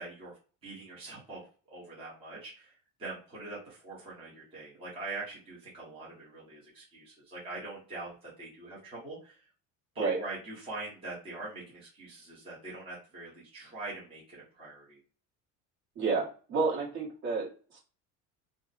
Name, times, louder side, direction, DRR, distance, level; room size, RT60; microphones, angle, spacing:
voice 1, 0.0-1.4 1.7-2.7 3.0-9.5 9.9-15.0, right 2 dB, 15° right, -7 dB, 0.9 m, -43 dB
voice 2, 15.9-17.8, right 4 dB, 45° right, -4 dB, 1.3 m, -30 dB
2.5 x 2.1 x 4.0 m, 0.38 s
cardioid pair, 180°, 37 cm